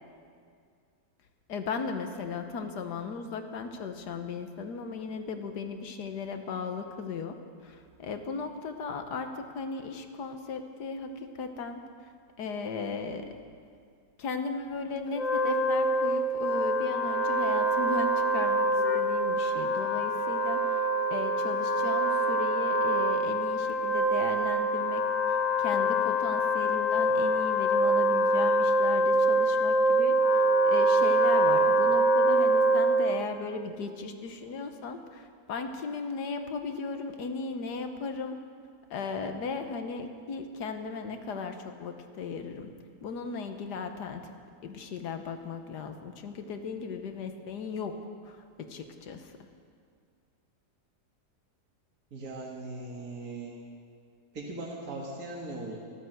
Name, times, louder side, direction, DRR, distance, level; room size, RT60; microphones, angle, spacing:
voice 1, 1.5-7.4 7.6-11.8 12.4-13.3 14.2-18.7 18.9-20.8 21.1-25.0 25.3-38.3 38.9-42.7 43.0-44.3 44.6-49.3, left 4 dB, 75° left, 7 dB, 1.6 m, -36 dB
Wind instrument woodwind instrument, 15.1-33.2, right 1 dB, 55° left, 1.3 m, -25 dB
voice 2, 52.1-53.6 54.3-55.8, right 2 dB, 60° right, -3 dB, 2.2 m, -39 dB
13.0 x 12.5 x 7.9 m, 2.2 s
omnidirectional pair, 1.8 m